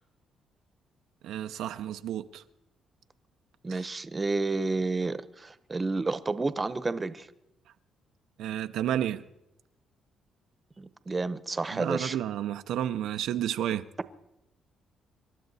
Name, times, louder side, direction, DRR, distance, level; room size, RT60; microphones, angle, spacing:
voice 1, 1.2-2.4 8.4-9.2 11.7-13.9, right 11 dB, 85° right, 0.5 m, -31 dB
voice 2, 3.6-7.3 10.8-12.2, right 3 dB, 25° right, 0.8 m, -30 dB
27.0 x 12.0 x 4.1 m
cardioid pair, 90°, 0 cm